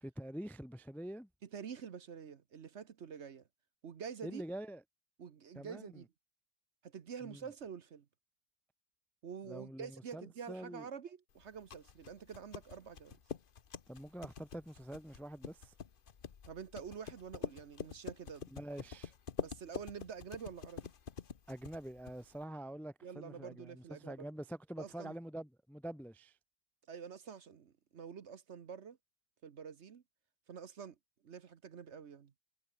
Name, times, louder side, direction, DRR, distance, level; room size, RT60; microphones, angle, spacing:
voice 1, 0.0-1.3 4.2-4.8 5.5-6.0 7.2-7.4 9.5-10.9 13.9-15.7 18.5-19.1 21.5-26.4, right 1 dB, ahead, 0.3 m, -46 dB
voice 2, 1.4-3.4 3.8-4.4 5.2-6.1 6.8-8.1 9.2-13.2 16.5-18.5 19.4-20.9 23.0-24.3 24.8-25.1 26.9-29.0 29.4-30.0 30.5-31.0 31.2-32.3, right 7 dB, 50° right, 1.1 m, -47 dB
sound 1, 11.4-22.4, left 7 dB, 40° left, 0.9 m, -47 dB
omnidirectional pair, 1.8 m